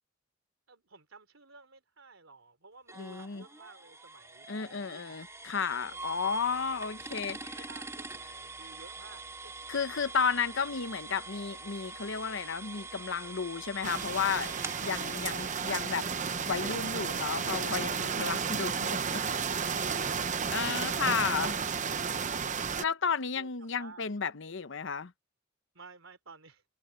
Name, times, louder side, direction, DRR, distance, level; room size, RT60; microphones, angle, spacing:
voice 1, 0.7-5.2 5.9-6.7 7.3-9.5 23.3-24.1 25.7-26.6, right 3 dB, 80° right, 3.6 m, -54 dB
sound 1, 2.9-18.6, right 3 dB, 15° right, 2.9 m, -45 dB
voice 2, 3.0-3.4 4.5-7.4 9.7-14.5 14.8-16.1 16.5-19.2 19.6-19.9 20.5-21.5 22.8-25.1, left 6 dB, 65° left, 0.8 m, -33 dB
sound 2, 13.8-22.8, right 6 dB, 40° right, 0.8 m, -32 dB
head